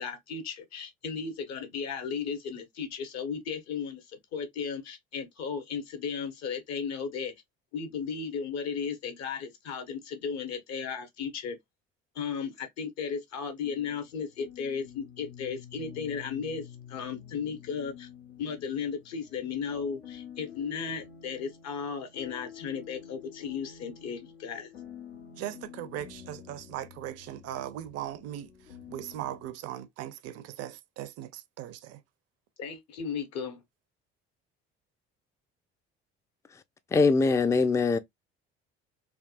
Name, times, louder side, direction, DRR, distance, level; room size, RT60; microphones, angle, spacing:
voice 1, 0.0-7.3 7.7-11.6 12.1-18.1 18.4-24.7 32.6-33.6, left 6 dB, 60° left, 1.0 m, -35 dB
sound 1, 13.6-29.5, left 8 dB, 80° left, 0.8 m, -49 dB
voice 2, 25.4-28.5 28.9-32.0, right 12 dB, 55° right, 0.5 m, -39 dB
voice 3, 36.9-38.0, left 4 dB, 10° left, 0.3 m, -22 dB
3.4 x 2.3 x 2.3 m
hypercardioid pair, 55°, 31 cm